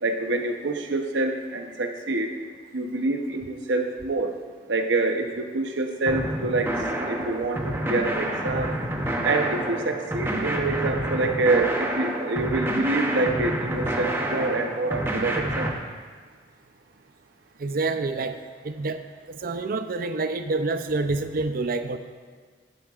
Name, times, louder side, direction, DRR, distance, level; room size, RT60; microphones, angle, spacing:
voice 1, 0.0-2.3 2.7-4.3 4.7-8.7 9.2-15.7, right 2 dB, 75° right, 5 dB, 0.8 m, -26 dB
sound 1, 6.1-15.7, right 1 dB, 15° right, 0.8 m, -28 dB
voice 2, 17.6-18.4 18.6-19.0 19.3-22.0, right 3 dB, 55° right, 9 dB, 0.5 m, -27 dB
12.5 x 9.8 x 2.5 m, 1.5 s
head